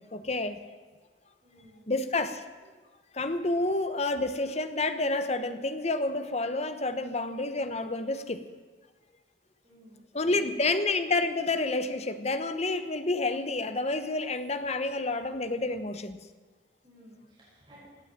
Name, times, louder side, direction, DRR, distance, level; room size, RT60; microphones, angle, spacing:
voice 1, 0.1-0.6 1.9-2.4 3.1-8.4 10.1-16.2, left 2 dB, 40° left, 10 dB, 1.1 m, -29 dB
voice 2, 1.4-1.9 9.6-10.2 10.6-10.7 14.7-14.8 16.8-17.9, equal, 30° right, -8 dB, 5.9 m, -55 dB
17.5 x 9.0 x 8.9 m, 1.4 s
head